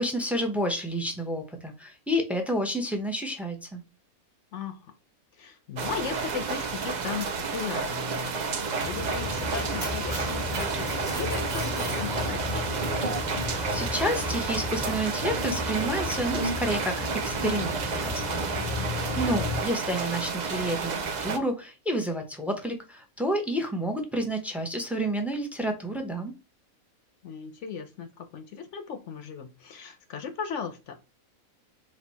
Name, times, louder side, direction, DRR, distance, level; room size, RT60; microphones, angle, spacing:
voice 1, 0.0-3.8 13.5-18.4 19.2-26.3, equal, ahead, 0.4 m, -30 dB
voice 2, 4.5-4.9 5.3-12.9 18.8-19.3 27.2-31.0, left 6 dB, 65° left, 0.9 m, -37 dB
sound 1, 5.8-21.4, right 5 dB, 60° right, 0.4 m, -31 dB
Mechanisms, 8.8-19.6, left 2 dB, 35° right, 1.3 m, -33 dB
4.4 x 2.9 x 4.0 m
omnidirectional pair, 1.5 m